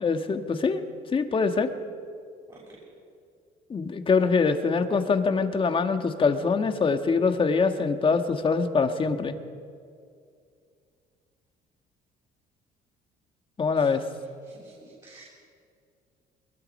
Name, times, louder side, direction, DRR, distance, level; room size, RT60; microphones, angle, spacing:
voice 1, 0.0-0.8 1.1-1.7 3.7-9.4 13.6-14.0, left 4 dB, 30° left, 7 dB, 1.6 m, -24 dB
voice 2, 14.6-15.2, right 3 dB, 25° right, -5 dB, 7.4 m, -51 dB
23.0 x 21.5 x 5.5 m, 2.3 s
cardioid pair, 110°, 17 cm